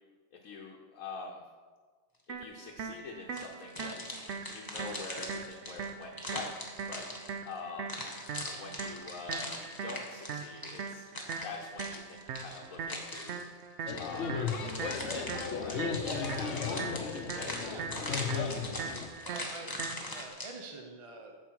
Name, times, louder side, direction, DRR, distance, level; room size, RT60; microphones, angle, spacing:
voice 1, 0.4-1.4 2.4-4.1 4.5-6.5 6.9-7.1 7.4-8.0 8.5-9.5 9.8-11.1 11.4-13.4 14.0-14.4 14.7-17.7 18.0-18.5, left 4 dB, 80° left, 0 dB, 1.3 m, -44 dB
sound 1, 2.3-20.3, right 5 dB, 60° right, 0.8 m, -41 dB
sound 2, 3.4-7.5 7.9-13.5 14.0-20.5, left 1 dB, 15° left, 1.2 m, -41 dB
sound 3, 13.9-19.1, left 5 dB, 60° left, 1.0 m, -35 dB
voice 2, 19.2-19.8 20.1-21.3, right 3 dB, 30° right, 1 dB, 0.7 m, -46 dB
9.0 x 7.1 x 4.6 m, 1.5 s
omnidirectional pair, 1.4 m